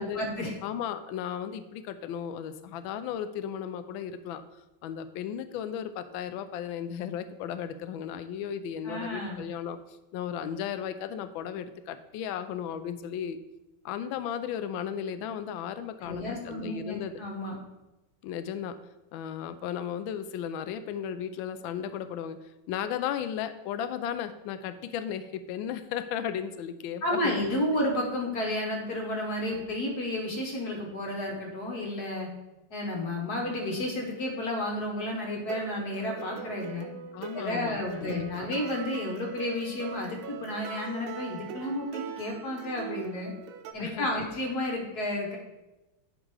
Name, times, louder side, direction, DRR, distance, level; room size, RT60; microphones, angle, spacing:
voice 1, 0.0-0.5 8.8-9.4 16.0-17.6 27.0-32.3 32.7-36.9 37.3-43.3 43.7-45.4, left 1 dB, 55° left, 0 dB, 1.8 m, -32 dB
voice 2, 0.6-4.4 4.8-9.8 10.1-13.4 13.8-17.1 18.2-18.8 19.1-22.4 22.7-27.4 37.1-38.5 43.8-44.1, left 9 dB, 80° left, 11 dB, 1.3 m, -35 dB
sound 1, 35.3-43.7, right 8 dB, 85° right, 1.5 m, -42 dB
10.5 x 3.8 x 4.7 m, 1.0 s
omnidirectional pair, 2.2 m